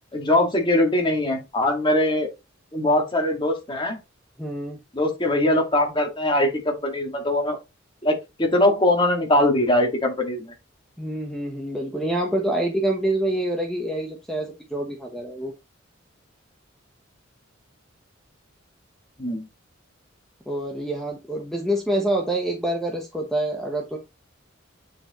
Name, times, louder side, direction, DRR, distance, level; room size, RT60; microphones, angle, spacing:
voice 1, 0.1-2.3 2.7-4.0 4.9-7.6 8.0-10.5 19.2-19.5, left 1 dB, 25° left, 1.9 m, -21 dB
voice 2, 4.4-4.8 11.0-15.5 20.5-24.0, right 1 dB, ahead, 1.0 m, -26 dB
8.6 x 4.5 x 3.0 m
head